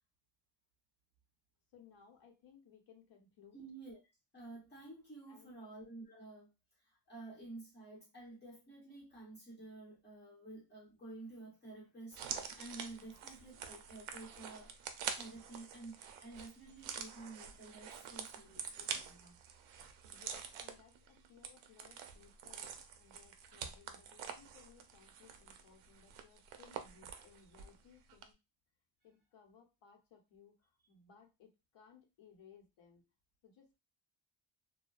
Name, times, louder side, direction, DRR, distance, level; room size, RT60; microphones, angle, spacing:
voice 1, 1.7-3.6 5.3-5.5 20.0-28.4 29.0-33.1 33.4-33.8, left 6 dB, 65° left, 0.9 m, -63 dB
voice 2, 3.5-4.0 4.3-6.5 6.8-14.7 15.1-19.3, right 2 dB, 20° left, 1.1 m, -51 dB
sound 1, 12.1-27.8 28.1-28.2, right 7 dB, 75° right, 0.5 m, -47 dB
2.6 x 2.2 x 2.3 m
cardioid pair, 150°, 49 cm